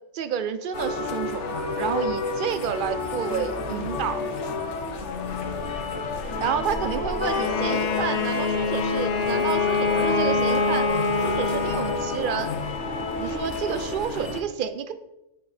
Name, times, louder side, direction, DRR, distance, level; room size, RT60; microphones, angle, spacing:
voice 1, 0.1-4.2 6.4-10.9 11.2-12.5 13.2-14.9, right 8 dB, 65° right, 11 dB, 0.5 m, -30 dB
sound 1, 0.7-14.4, left 3 dB, 65° left, 1.2 m, -30 dB
Bowed string instrument, 7.3-12.4, left 4 dB, 45° left, 0.5 m, -25 dB
9.2 x 4.2 x 4.2 m, 0.90 s
omnidirectional pair, 1.4 m